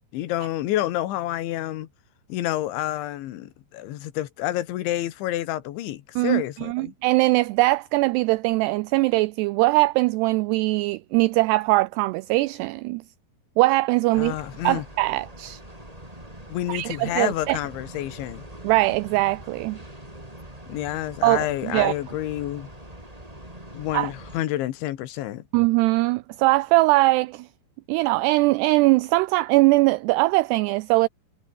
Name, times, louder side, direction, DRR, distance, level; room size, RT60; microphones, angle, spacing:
voice 1, 0.1-1.9 2.3-6.9 14.1-14.9 16.5-18.5 20.7-22.7 23.7-25.4, left 14 dB, 85° left, 3.8 m, -29 dB
voice 2, 6.2-13.0 13.6-14.4 14.6-15.6 16.7-17.6 18.6-19.8 21.2-21.9 23.9-24.1 25.5-27.5 27.9-31.1, right 21 dB, 90° right, 2.3 m, -21 dB
sound 1, 14.1-24.4, right 1 dB, 5° right, 6.3 m, -43 dB
omnidirectional pair, 5.3 m